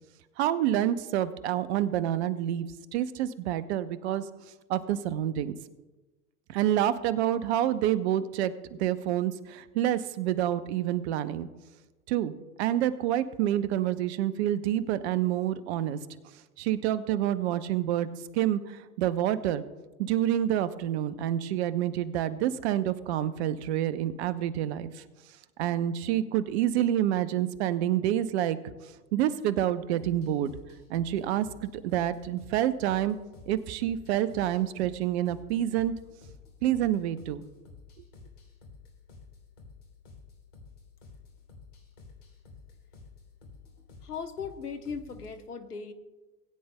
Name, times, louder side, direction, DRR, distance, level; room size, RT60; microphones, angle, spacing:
voice 1, 0.4-4.2 4.7-5.6 6.5-11.5 12.1-12.3 12.6-16.0 16.6-18.1 18.3-19.6 20.0-25.0 25.6-28.6 29.1-30.5 30.9-33.2 33.5-35.9 36.6-37.5, right 11 dB, 45° right, 13 dB, 0.8 m, -28 dB
sound 1, 30.0-45.3, left 4 dB, 55° left, 3.1 m, -52 dB
voice 2, 44.0-45.9, left 5 dB, 85° left, 10 dB, 1.1 m, -38 dB
20.0 x 9.4 x 2.2 m, 1.2 s
hypercardioid pair, 100°, 45 cm